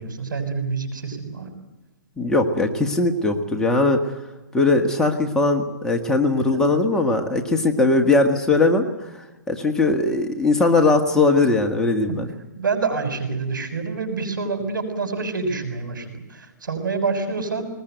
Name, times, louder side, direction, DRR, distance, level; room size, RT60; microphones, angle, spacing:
voice 1, 0.0-1.5 6.5-6.6 12.1-12.2 12.5-17.7, right 4 dB, 90° right, 8 dB, 6.7 m, -27 dB
voice 2, 2.2-4.0 4.5-9.1 9.5-12.3, left 3 dB, 5° left, 2 dB, 1.7 m, -20 dB
21.0 x 20.5 x 9.4 m, 1.1 s
hypercardioid pair, 145°, 10 cm